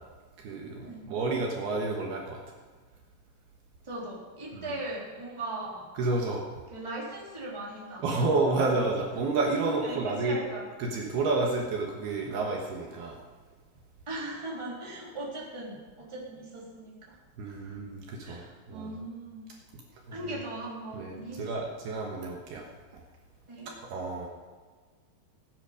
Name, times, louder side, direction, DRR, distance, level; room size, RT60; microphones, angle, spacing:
voice 1, 0.4-2.4 4.5-4.6 6.0-6.4 8.0-10.4 10.8-13.2 17.4-18.9 20.1-20.2 20.9-22.7 23.9-24.3, right 3 dB, 65° right, 0 dB, 3.1 m, -30 dB
voice 2, 3.8-5.9 6.7-8.4 9.8-10.9 14.1-17.2 17.4-17.8 18.2-19.4 20.1-21.7 23.5-23.7, right 2 dB, 5° right, -5 dB, 2.8 m, -39 dB
18.0 x 9.9 x 5.1 m, 1.5 s
omnidirectional pair, 5.2 m